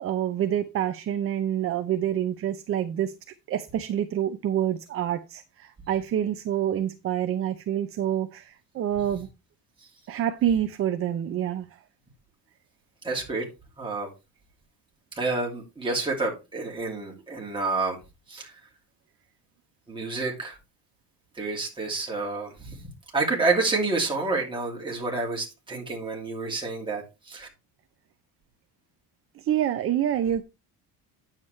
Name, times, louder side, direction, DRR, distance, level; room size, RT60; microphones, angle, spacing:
voice 1, 0.0-3.1 3.5-9.3 10.1-11.7 29.3-30.4, right 10 dB, 35° right, 0.5 m, -27 dB
voice 2, 13.0-13.4 13.8-14.1 15.2-18.0 18.3-18.5 19.9-20.6 21.4-22.7 23.1-27.0 27.3-27.5, right 3 dB, 10° right, 2.6 m, -28 dB
9.3 x 7.3 x 3.2 m
cardioid pair, 175°, 42 cm